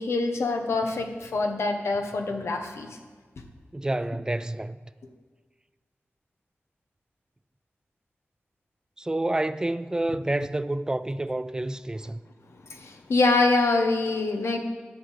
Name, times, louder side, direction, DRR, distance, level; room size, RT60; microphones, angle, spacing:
voice 1, 0.0-3.0 12.7-14.6, left 3 dB, 85° left, 1.2 m, -25 dB
voice 2, 3.7-4.8 9.0-12.2, right 1 dB, 15° right, 0.4 m, -28 dB
11.0 x 6.4 x 8.3 m
wide cardioid pair, 110°, 4 cm